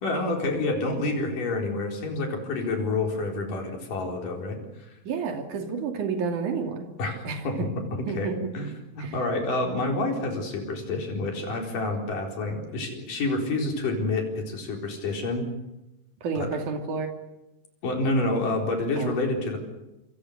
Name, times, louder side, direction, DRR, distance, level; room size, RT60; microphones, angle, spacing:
voice 1, 0.0-4.6 7.0-7.5 8.1-8.3 8.5-15.5 16.4-16.5 17.8-19.6, left 2 dB, 65° left, 2 dB, 5.8 m, -28 dB
voice 2, 5.0-7.0 7.2-7.7 8.1-8.4 9.0-9.2 16.2-17.1 19.0-19.2, right 5 dB, 60° right, 4 dB, 4.1 m, -30 dB
27.5 x 25.5 x 6.7 m, 0.96 s
omnidirectional pair, 4.1 m